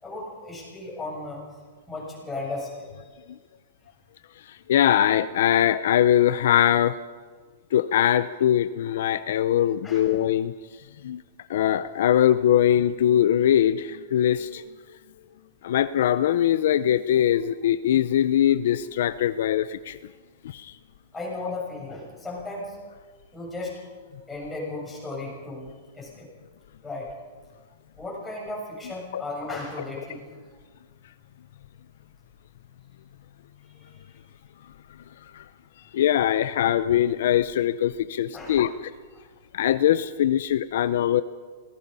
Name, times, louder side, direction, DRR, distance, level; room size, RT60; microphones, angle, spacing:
voice 1, 0.0-1.4 1.9-2.9 9.8-10.1 21.1-22.8 23.3-23.8 24.2-26.3 26.8-27.1 28.0-30.3 33.7-34.0 38.3-38.6 39.1-39.2, left 2 dB, 5° left, -5 dB, 7.4 m, -35 dB
voice 2, 4.5-7.0 7.7-10.5 11.0-11.2 11.5-14.6 15.6-20.0 20.4-20.8 29.1-29.2 29.5-29.6 35.3-35.4 35.9-38.9 39.5-41.2, left 11 dB, 65° left, 13 dB, 0.7 m, -22 dB
26.0 x 18.0 x 5.6 m, 1.5 s
hypercardioid pair, 150°, 0 cm